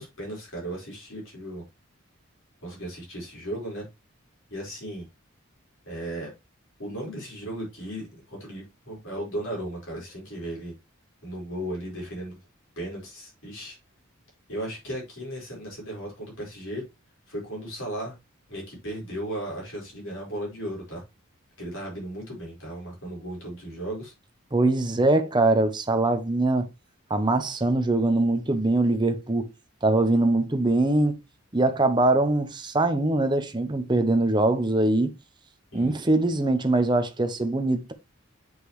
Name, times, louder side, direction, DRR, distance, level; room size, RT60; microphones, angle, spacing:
voice 1, 0.0-1.6 2.6-3.8 4.5-5.1 5.8-6.3 6.8-10.7 11.2-12.4 12.8-13.8 14.5-16.8 17.3-18.2 18.5-21.0 21.6-24.1 35.7-35.9, right 1 dB, 65° left, 4.8 m, -36 dB
voice 2, 24.5-26.7 27.1-29.5 29.8-31.2 31.5-35.1 35.7-37.9, right 2 dB, 20° right, 0.8 m, -22 dB
8.2 x 5.2 x 3.2 m
head